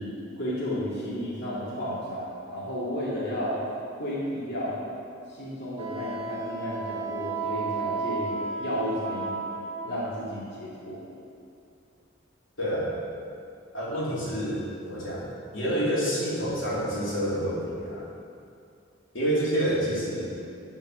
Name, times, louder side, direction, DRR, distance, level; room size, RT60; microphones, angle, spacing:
voice 1, 0.0-3.6 4.0-4.7 5.3-9.3 9.8-11.1, equal, 60° left, -9 dB, 2.3 m, -32 dB
Wind instrument woodwind instrument, 5.8-9.9, right 4 dB, 30° right, 1.7 m, -33 dB
voice 2, 12.6-12.9 13.7-18.1 19.1-20.3, equal, 75° left, -7 dB, 2.6 m, -28 dB
11.5 x 4.6 x 6.1 m, 2.4 s
head